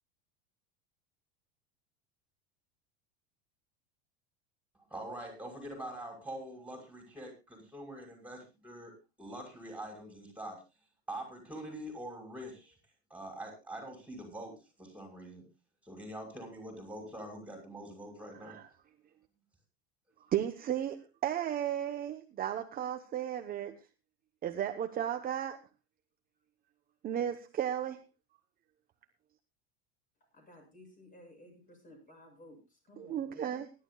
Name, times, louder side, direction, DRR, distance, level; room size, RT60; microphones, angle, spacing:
voice 1, 4.9-8.9 9.2-10.6 11.1-12.7 13.1-15.4 15.8-18.6, right 1 dB, 5° right, 1 dB, 6.0 m, -44 dB
voice 2, 20.2-23.7 24.4-25.6 27.0-28.0 33.0-33.7, right 10 dB, 30° right, 6 dB, 1.0 m, -34 dB
voice 3, 30.3-33.6, left 1 dB, 25° left, 3 dB, 7.4 m, -55 dB
23.5 x 11.5 x 2.3 m, 0.27 s
supercardioid pair, 135°, 32 cm